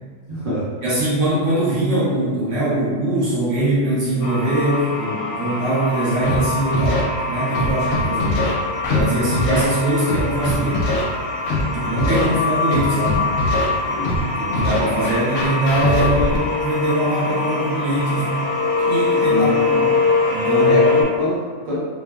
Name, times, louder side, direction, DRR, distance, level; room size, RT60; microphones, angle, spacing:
voice 1, 0.3-0.7 19.3-19.6 20.6-21.8, equal, 45° right, -9 dB, 0.9 m, -24 dB
voice 2, 0.8-8.4 8.9-10.9 11.7-13.2 13.9-18.4 18.8-19.9 20.3-20.8, right 1 dB, 65° right, -9 dB, 1.2 m, -22 dB
sound 1, 4.2-21.0, left 3 dB, 85° left, 1.0 m, -23 dB
Scratching (performance technique), 6.2-6.4 6.7-7.0 7.5-8.5 8.8-9.0 9.3-9.6 10.1-11.0 11.5-11.6 12.0-12.2 12.7-13.7 14.0-14.2 14.5-16.4, left 2 dB, 65° left, 0.7 m, -22 dB
3.1 x 2.1 x 2.3 m, 1.5 s
omnidirectional pair, 1.4 m